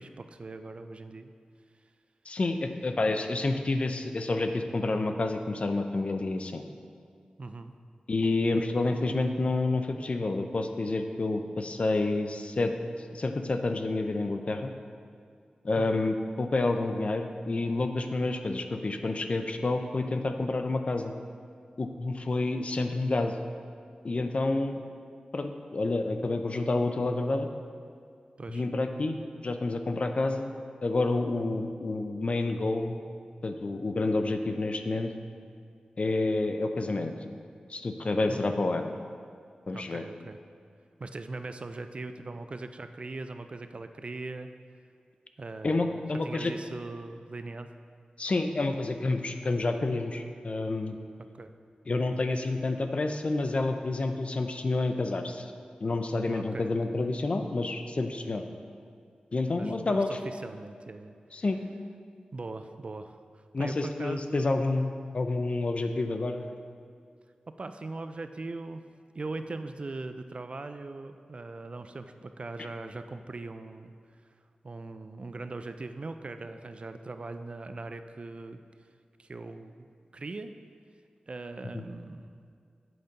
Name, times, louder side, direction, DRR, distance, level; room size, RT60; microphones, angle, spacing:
voice 1, 0.0-1.3 7.4-7.7 15.8-16.0 28.4-28.6 38.3-38.5 39.7-40.4 41.0-44.5 45.4-47.7 51.3-51.5 56.3-57.0 59.6-61.2 62.3-64.7 67.6-68.8 69.1-73.9 74.6-78.6 79.2-79.9 80.1-80.5 81.3-82.4, right 3 dB, 45° right, 9 dB, 0.3 m, -40 dB
voice 2, 2.3-6.6 8.1-12.7 13.1-14.7 15.6-21.1 21.8-23.3 24.0-24.8 25.3-27.5 28.5-29.2 29.4-30.5 30.8-33.0 33.4-35.1 36.0-37.1 37.7-38.9 39.7-40.0 45.6-46.5 48.2-51.0 51.9-55.5 55.8-58.4 59.3-60.1 61.3-61.6 63.5-66.5 81.7-81.8, left 2 dB, 50° left, 6 dB, 0.5 m, -29 dB
7.7 x 5.1 x 4.0 m, 2.3 s
wide cardioid pair, 80°, 3 cm